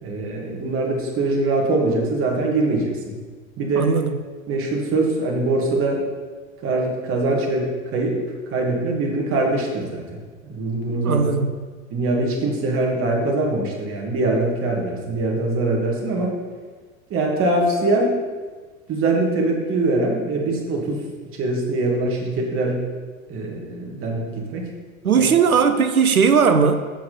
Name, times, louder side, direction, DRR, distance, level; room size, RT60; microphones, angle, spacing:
voice 1, 0.0-3.2 3.6-3.9 4.5-6.0 6.6-8.2 8.5-10.0 10.4-11.2 11.9-16.3 17.1-18.2 18.9-21.0 21.3-22.8 23.3-24.3 24.5-24.7 25.1-25.3, right 2 dB, 30° right, 0 dB, 2.3 m, -22 dB
voice 2, 3.7-4.2 11.0-11.5 25.0-26.8, right 6 dB, 85° right, 9 dB, 0.8 m, -18 dB
7.4 x 6.9 x 5.3 m, 1.4 s
figure-of-eight pair, 95°, 42 cm